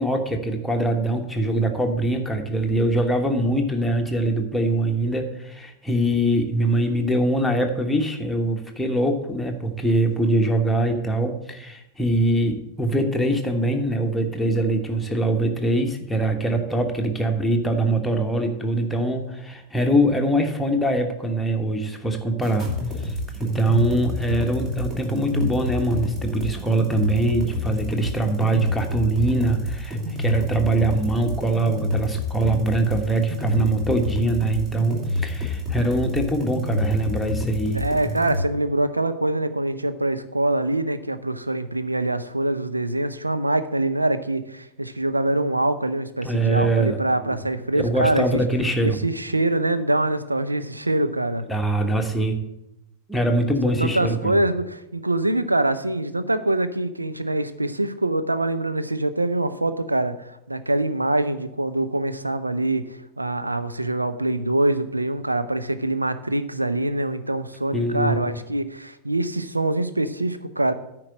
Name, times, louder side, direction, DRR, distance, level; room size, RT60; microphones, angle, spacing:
voice 1, 0.0-22.7 23.0-37.8 46.2-47.0 47.7-49.0 51.5-52.4 53.1-54.4 67.7-68.3, right 1 dB, 5° left, 2 dB, 1.2 m, -23 dB
sound 1, 22.4-38.4, left 2 dB, 25° right, 2.9 m, -28 dB
voice 2, 37.7-48.4 48.8-51.4 53.8-70.7, right 1 dB, 85° right, 11 dB, 0.6 m, -24 dB
9.7 x 4.5 x 7.5 m, 0.87 s
figure-of-eight pair, 90°, 0 cm